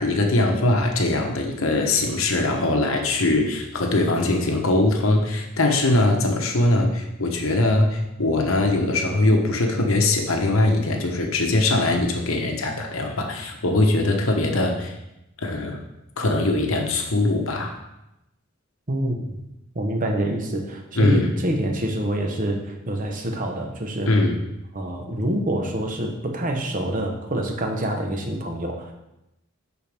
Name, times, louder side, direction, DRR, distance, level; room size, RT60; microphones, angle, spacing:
voice 1, 0.0-14.9 15.4-15.8 16.2-17.7 20.9-21.3 24.1-24.4, left 2 dB, 80° left, 2 dB, 1.0 m, -21 dB
voice 2, 18.9-19.4 19.7-24.1 24.7-28.9, right 1 dB, 40° right, 3 dB, 1.1 m, -26 dB
11.0 x 4.4 x 3.5 m, 0.90 s
head